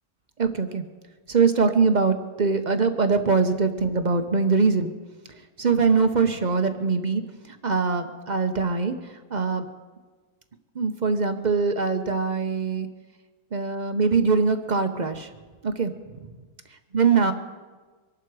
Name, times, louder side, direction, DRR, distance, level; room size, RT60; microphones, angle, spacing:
voice 1, 0.4-0.8 1.3-4.9 5.6-7.2 7.5-8.9 9.3-9.7 10.7-12.9 13.5-15.3 15.6-16.3 16.9-17.3, right 5 dB, 40° right, 8 dB, 0.7 m, -22 dB
24.0 x 12.0 x 4.8 m, 1.4 s
omnidirectional pair, 1.8 m